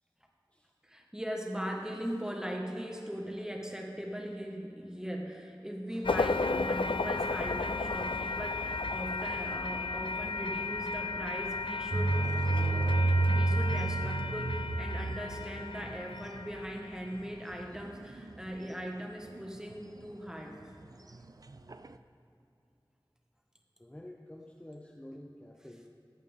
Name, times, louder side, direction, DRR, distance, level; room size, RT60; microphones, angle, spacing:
voice 1, 0.8-12.2 13.3-20.6, equal, 5° right, 0 dB, 1.5 m, -39 dB
sound 1, 6.0-17.2, left 3 dB, 90° left, 0.4 m, -34 dB
sound 2, 11.9-18.7 19.4-19.8 20.1-20.2 20.6-21.9, right 2 dB, 45° right, 0.4 m, -31 dB
voice 2, 23.8-25.9, left 1 dB, 15° left, 1 dB, 0.6 m, -49 dB
14.5 x 8.9 x 3.6 m, 2.8 s
wide cardioid pair, 40°, 8 cm